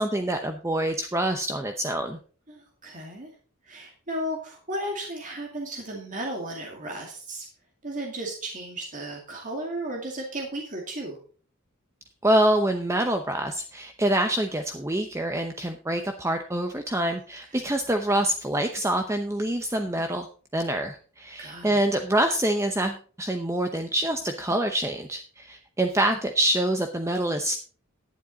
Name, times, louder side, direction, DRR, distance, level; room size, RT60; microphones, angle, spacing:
voice 1, 0.0-2.2 12.2-20.3 20.5-27.6, right 1 dB, 15° right, 5 dB, 0.7 m, -26 dB
voice 2, 2.5-3.3 3.6-7.5 7.8-11.2 21.4-21.8, right 1 dB, 35° right, 0 dB, 2.2 m, -34 dB
11.5 x 10.0 x 4.0 m, 0.41 s
head